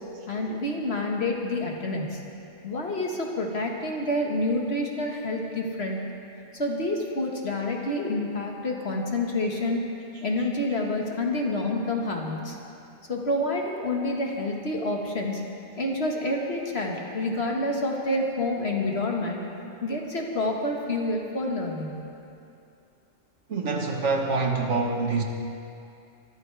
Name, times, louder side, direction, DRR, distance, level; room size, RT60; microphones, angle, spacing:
voice 1, 0.3-2.2 2.6-6.0 6.5-9.8 10.2-12.6 13.1-15.4 15.8-19.4 19.8-22.0, left 1 dB, 55° left, 0 dB, 1.9 m, -28 dB
voice 2, 23.5-25.2, right 3 dB, 70° right, 2 dB, 1.7 m, -25 dB
23.5 x 14.0 x 3.4 m, 2.6 s
omnidirectional pair, 1.3 m